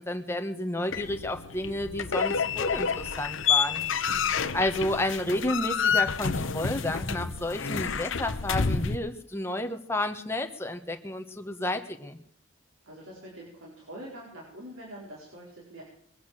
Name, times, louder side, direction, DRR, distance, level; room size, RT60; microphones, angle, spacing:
voice 1, 0.0-12.2, left 1 dB, 10° left, 6 dB, 1.4 m, -31 dB
sound 1, 0.9-9.0, left 6 dB, 70° left, 1.0 m, -29 dB
voice 2, 4.2-4.6 12.8-15.8, equal, 90° right, -4 dB, 4.8 m, -44 dB
22.0 x 8.6 x 7.6 m, 0.63 s
head